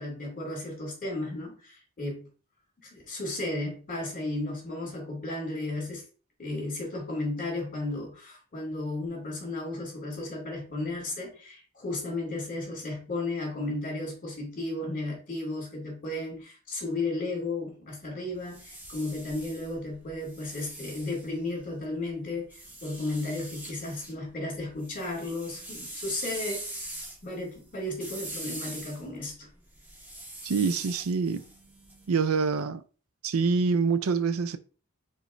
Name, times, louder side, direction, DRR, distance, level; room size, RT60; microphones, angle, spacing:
voice 1, 0.0-2.3 2.8-6.0 6.4-22.5 22.8-26.6 27.2-29.5, left 2 dB, 40° left, 2.4 m, -34 dB
sound 1, 18.3-21.8 22.5-24.2 24.5-32.4, right 1 dB, 10° right, 1.4 m, -43 dB
voice 2, 30.4-31.4 32.1-32.8 33.2-34.6, right 5 dB, 75° right, 0.5 m, -26 dB
5.0 x 4.1 x 2.6 m
head